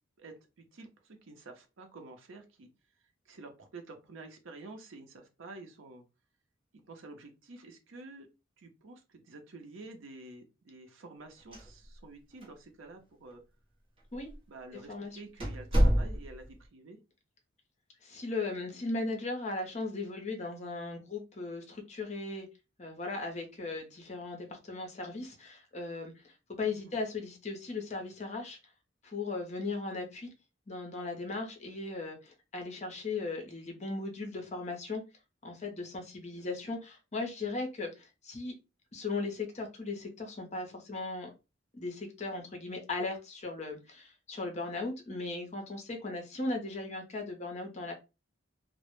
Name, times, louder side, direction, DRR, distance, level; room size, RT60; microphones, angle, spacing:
voice 1, 0.2-2.7 3.3-6.0 6.9-8.3 8.6-13.4 14.5-17.0 26.6-27.0 36.3-36.7, right 3 dB, 80° right, 5 dB, 0.6 m, -50 dB
sound 1, 11.4-12.2 12.4-12.5 13.3-13.4 14.1-14.3 14.8-14.9 15.4-16.5, equal, 30° right, 0.7 m, -28 dB
voice 2, 14.9-15.2 18.0-22.5 22.8-28.6 29.0-30.3 30.7-35.0 35.4-38.5 38.9-41.3 41.7-47.9, left 3 dB, 35° left, 3 dB, 0.5 m, -37 dB
2.0 x 2.0 x 3.0 m, 0.28 s
head